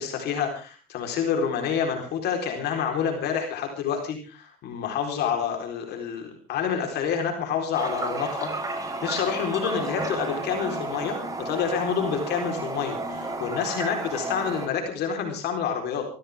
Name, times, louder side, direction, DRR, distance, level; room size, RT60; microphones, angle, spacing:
voice 1, 0.0-16.1, left 7 dB, 75° left, 3 dB, 4.1 m, -28 dB
Toilet flush, 7.7-14.7, right 2 dB, 20° right, 4.4 m, -32 dB
23.5 x 16.0 x 3.6 m, 0.35 s
cardioid pair, 110°, 17 cm